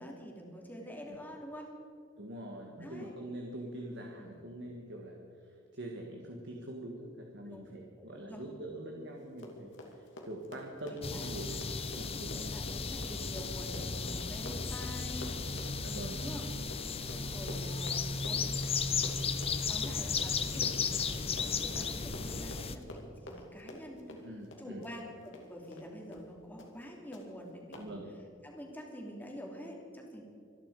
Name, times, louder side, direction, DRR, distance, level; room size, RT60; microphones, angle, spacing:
voice 1, 0.0-1.7 2.8-3.1 4.2-4.4 7.4-7.7 8.0-8.4 11.1-11.7 12.3-15.4 16.1-16.5 17.1-18.7 19.4-24.0 24.6-27.9 28.4-30.2, equal, 10° left, 0 dB, 2.9 m, -46 dB
voice 2, 2.2-11.5 11.9-12.5 15.8-16.2 17.5-17.6 24.2-24.9 27.7-28.1, right 1 dB, 60° right, 1 dB, 1.8 m, -44 dB
Run, 9.2-25.9 26.1-26.3 26.6-26.8 27.1-27.2 27.7-27.9, left 1 dB, 65° left, 2.5 m, -48 dB
sound 1, 11.0-22.8, left 5 dB, 30° left, 0.8 m, -35 dB
25.5 x 11.0 x 4.9 m, 2.4 s
head